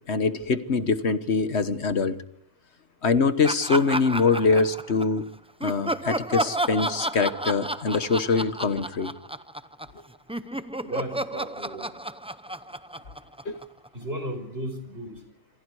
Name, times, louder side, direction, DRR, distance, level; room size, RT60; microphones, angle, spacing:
voice 1, 0.1-2.2 3.0-5.3 5.6-9.1 13.4-13.6, left 4 dB, 75° left, 11 dB, 1.6 m, -24 dB
Laughter, 3.4-5.2 5.6-10.0 10.3-13.9, right 1 dB, 5° right, 0.6 m, -31 dB
voice 2, 10.9-12.0 13.9-15.2, right 1 dB, 65° right, 7 dB, 5.4 m, -35 dB
27.0 x 26.5 x 4.8 m, 0.76 s
omnidirectional pair, 1.1 m